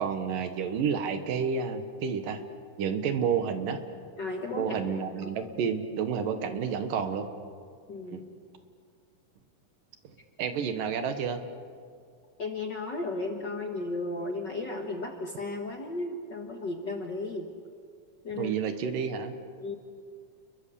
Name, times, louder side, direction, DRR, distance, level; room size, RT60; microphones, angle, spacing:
voice 1, 0.0-2.4 2.8-3.8 4.5-7.3 8.1-8.2 10.4-11.4 18.3-19.3, right 6 dB, 80° right, 8 dB, 3.1 m, -30 dB
voice 2, 4.2-4.8 5.2-5.3 7.9-8.3 12.4-17.5 18.2-18.5 19.6-19.7, left 2 dB, 50° left, 3 dB, 1.5 m, -34 dB
29.5 x 22.0 x 7.0 m, 2.1 s
omnidirectional pair, 3.8 m